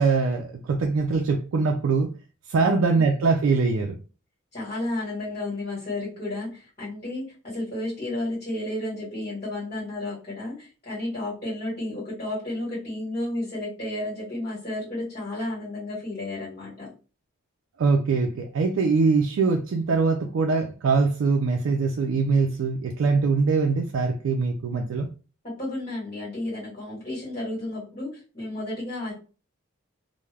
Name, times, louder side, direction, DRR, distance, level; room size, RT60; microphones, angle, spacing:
voice 1, 0.0-2.1 2.5-3.9 17.8-25.1, right 4 dB, 85° right, 2 dB, 0.4 m, -23 dB
voice 2, 2.6-3.0 4.5-16.9 25.6-29.1, left 1 dB, 35° left, -7 dB, 1.2 m, -32 dB
2.3 x 2.1 x 3.2 m, 0.35 s
head